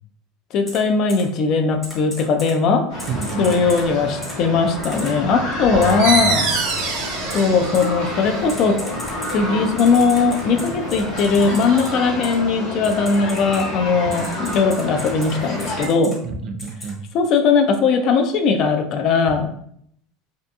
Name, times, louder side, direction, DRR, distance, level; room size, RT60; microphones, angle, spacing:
voice 1, 0.5-2.9 3.4-6.5 7.3-8.8 9.3-16.2 17.1-19.5, left 5 dB, 45° left, 6 dB, 0.3 m, -19 dB
Typing, 0.7-0.8 1.1-1.2 1.8-2.5 3.0-3.8 4.2-4.3 4.8-5.1 5.8-5.9 6.7-6.8 7.3-7.4 7.7-7.8 8.5-9.3 9.8-11.9 12.2-12.4 12.8-13.6 14.1-15.3 15.6-16.1 16.6-16.9, left 1 dB, 15° left, 0.8 m, -35 dB
sound 1, 2.9-15.9, left 1 dB, 70° left, 1.0 m, -29 dB
voice 2, 3.1-3.7 5.7-6.3 14.1-14.2 16.2-17.0, right 5 dB, 40° right, 6 dB, 0.3 m, -29 dB
sound 2, 6.0-11.3, right 3 dB, 70° right, 0.6 m, -27 dB
2.6 x 2.5 x 2.2 m, 0.67 s
supercardioid pair, 145°, 0 cm